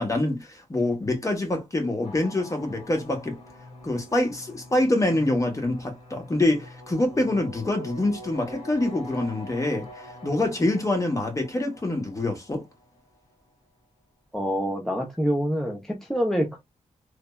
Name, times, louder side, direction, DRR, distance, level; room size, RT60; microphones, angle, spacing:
voice 1, 0.0-3.4 3.8-9.9 10.2-12.6, left 1 dB, 25° left, 1.0 m, -25 dB
sound 1, 2.0-13.2, left 1 dB, 45° left, 1.7 m, -45 dB
voice 2, 14.3-16.6, equal, 5° left, 0.6 m, -26 dB
3.3 x 2.1 x 2.2 m
cardioid pair, 90°, 12 cm